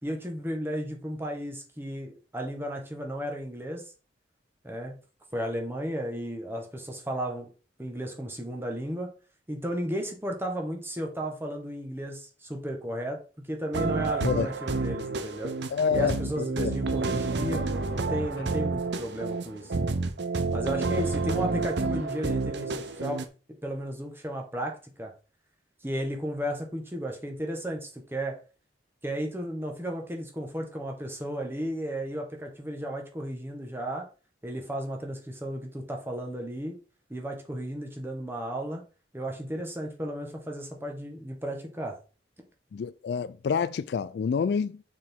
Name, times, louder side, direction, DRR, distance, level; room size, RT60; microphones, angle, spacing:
voice 1, 0.0-3.8 4.6-5.0 5.3-7.5 7.8-9.1 9.5-15.5 15.9-19.8 20.5-23.2 23.6-25.1 25.8-28.4 29.0-34.1 34.4-36.8 37.1-38.8 39.1-42.0, equal, 15° right, 1.3 m, -34 dB
sound 1, 13.7-23.3, right 3 dB, 75° right, 0.7 m, -29 dB
voice 2, 15.7-16.2 16.6-16.8 42.7-44.8, left 6 dB, 65° left, 0.3 m, -27 dB
6.3 x 4.6 x 3.7 m
head